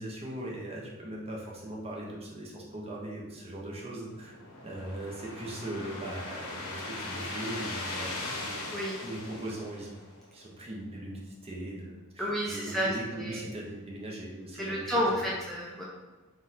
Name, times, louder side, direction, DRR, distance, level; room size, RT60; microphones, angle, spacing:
voice 1, 0.0-4.3 4.6-8.1 8.4-8.6 9.0-10.0 10.3-15.3, right 1 dB, 30° right, -3 dB, 0.8 m, -39 dB
sound 1, 3.8-10.3, left 2 dB, 80° left, 0.8 m, -39 dB
voice 2, 12.2-13.4 14.6-15.8, equal, ahead, -6 dB, 0.5 m, -31 dB
3.9 x 2.5 x 4.1 m, 1.2 s
head